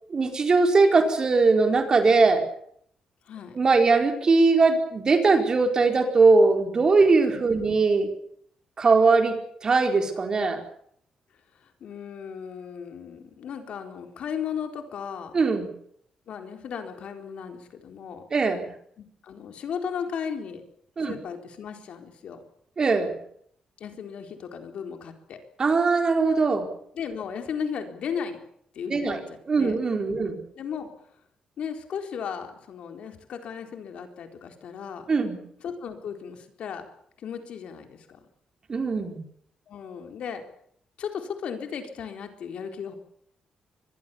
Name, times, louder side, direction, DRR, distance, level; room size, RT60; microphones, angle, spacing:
voice 1, 0.1-2.4 3.5-8.1 8.8-9.3 9.6-10.6 15.3-15.7 18.3-18.7 21.0-21.1 22.8-23.2 25.6-26.7 28.9-29.2 29.5-30.4 35.1-35.4 38.7-39.2, right 4 dB, 35° right, 5 dB, 4.5 m, -20 dB
voice 2, 3.3-3.6 7.3-7.6 11.6-15.3 16.3-18.2 19.0-20.6 21.0-22.4 23.8-25.4 26.9-28.4 28.7-29.8 30.1-30.9 31.6-35.1 35.6-36.9 37.2-38.2 39.7-40.4 41.0-43.0, left 7 dB, 70° left, 6 dB, 4.1 m, -36 dB
24.5 x 21.5 x 7.2 m, 0.68 s
cardioid pair, 110°, 2 cm